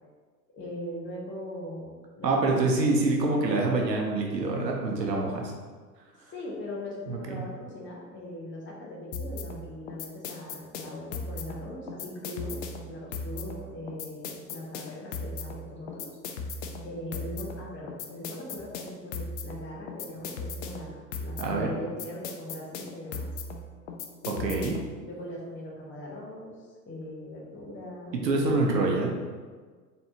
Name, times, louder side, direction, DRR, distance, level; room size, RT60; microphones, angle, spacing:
voice 1, 0.5-2.7 6.3-16.1 16.8-23.3 24.2-28.6, left 1 dB, 25° left, -3 dB, 1.0 m, -40 dB
voice 2, 2.2-5.5 7.1-7.4 21.4-21.8 24.4-24.8 28.1-29.1, right 3 dB, 75° right, 0 dB, 0.9 m, -26 dB
sound 1, 9.1-25.0, left 3 dB, 50° left, 0.6 m, -38 dB
4.4 x 3.1 x 2.9 m, 1.5 s
figure-of-eight pair, 90°, 50 cm